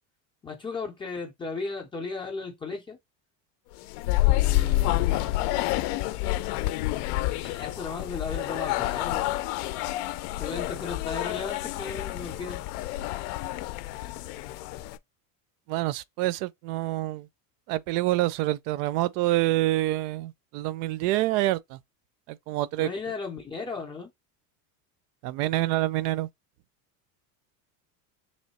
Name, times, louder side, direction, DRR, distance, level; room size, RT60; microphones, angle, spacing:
voice 1, 0.4-3.0 4.2-5.4 7.3-9.3 10.4-12.6 22.8-24.1, left 4 dB, 10° left, 0.4 m, -36 dB
sound 1, 3.8-15.0, left 16 dB, 70° left, 0.5 m, -28 dB
voice 2, 15.7-17.3 17.7-21.8 22.3-22.9 25.2-26.3, right 16 dB, 80° right, 0.6 m, -27 dB
3.1 x 3.0 x 4.1 m
cardioid pair, 170°, 47 cm